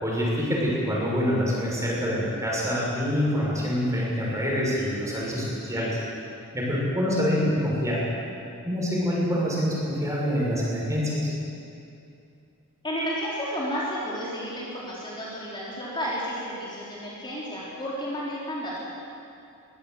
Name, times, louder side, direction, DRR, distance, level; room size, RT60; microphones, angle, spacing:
voice 1, 0.0-6.0 6.5-8.0 8.6-11.3, equal, 15° right, -4 dB, 6.5 m, -26 dB
voice 2, 12.8-18.8, equal, 20° left, -7 dB, 3.9 m, -32 dB
22.5 x 16.5 x 8.2 m, 2.7 s
head